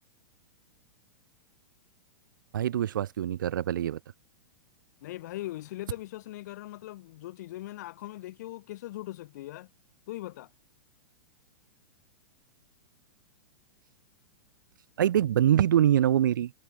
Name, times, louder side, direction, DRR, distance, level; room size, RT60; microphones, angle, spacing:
voice 1, 2.5-4.0 15.0-16.5, right 11 dB, 85° right, 0.8 m, -24 dB
voice 2, 5.0-9.7 10.1-10.5, left 16 dB, 60° left, 1.1 m, -40 dB
hypercardioid pair, 140°, 10 cm